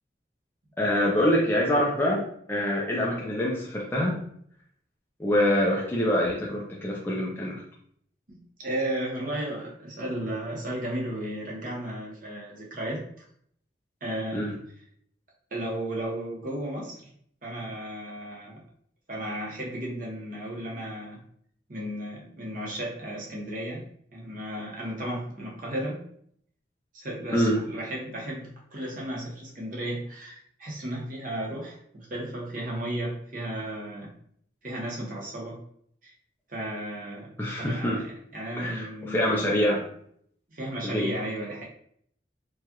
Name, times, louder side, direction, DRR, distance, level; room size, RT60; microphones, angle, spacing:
voice 1, 0.8-4.2 5.2-7.6 14.3-14.6 27.3-27.6 37.4-38.0 38.6-39.8 40.8-41.1, equal, 10° left, -4 dB, 0.5 m, -25 dB
voice 2, 8.3-13.2 14.0-14.5 15.5-17.1 17.4-18.6 19.1-21.2 21.7-23.8 24.1-26.0 26.9-34.1 34.6-35.6 36.0-36.1 36.5-39.5 40.5-41.6, right 1 dB, 50° right, -3 dB, 1.1 m, -34 dB
4.7 x 2.4 x 2.9 m, 0.66 s
head